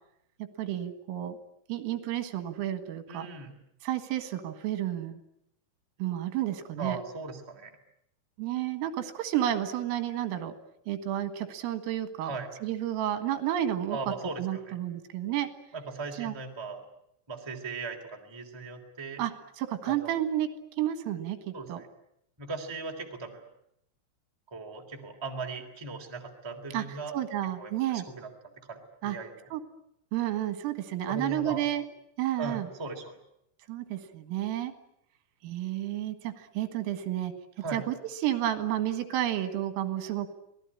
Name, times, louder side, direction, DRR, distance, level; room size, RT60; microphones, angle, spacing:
voice 1, 0.6-1.4 1.7-3.3 3.8-5.2 6.0-7.0 8.4-10.5 10.9-12.3 12.6-15.5 16.2-16.3 19.2-20.5 20.8-21.8 26.7-28.1 29.0-29.2 29.5-29.6 30.1-31.8 32.2-32.7 33.7-34.7 35.4-37.3 37.7-40.3, right 12 dB, 80° right, 9 dB, 4.3 m, -31 dB
voice 2, 3.1-3.5 6.8-7.7 12.2-12.5 13.9-14.8 15.7-16.8 17.3-19.2 19.9-20.1 21.5-21.9 22.4-23.5 24.5-27.1 27.6-28.3 28.7-29.3 31.1-31.6 32.4-33.1 37.6-37.8, right 4 dB, 5° right, 2 dB, 2.3 m, -38 dB
26.5 x 18.5 x 9.9 m, 0.77 s
omnidirectional pair, 5.9 m